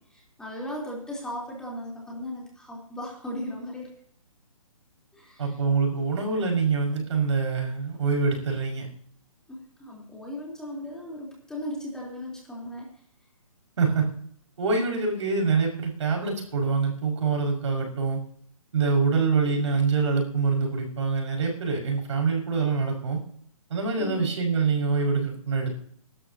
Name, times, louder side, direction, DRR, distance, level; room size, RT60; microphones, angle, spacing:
voice 1, 0.1-3.9 5.1-5.6 9.5-13.0 24.0-24.3, left 1 dB, 5° left, -4 dB, 3.7 m, -37 dB
voice 2, 5.4-8.9 13.8-14.1 14.6-18.2 18.7-23.2 23.7-25.7, right 4 dB, 55° right, 1 dB, 5.9 m, -25 dB
24.0 x 12.5 x 2.9 m, 0.63 s
hypercardioid pair, 155°, 18 cm